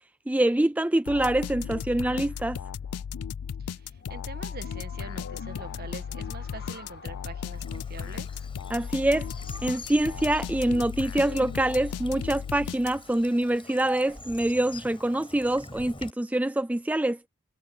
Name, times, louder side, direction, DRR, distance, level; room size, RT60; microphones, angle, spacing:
voice 1, 0.3-2.6 8.7-9.3 9.6-17.2, right 1 dB, 5° right, 0.3 m, -25 dB
sound 1, 1.1-13.3, left 7 dB, 90° left, 0.4 m, -36 dB
voice 2, 3.6-8.3, right 3 dB, 45° right, 1.7 m, -44 dB
sound 2, 3.8-9.8, left 5 dB, 50° left, 1.6 m, -49 dB
Bird vocalization bird call bird song / Stream, 7.5-16.1, left 3 dB, 25° left, 5.2 m, -46 dB
head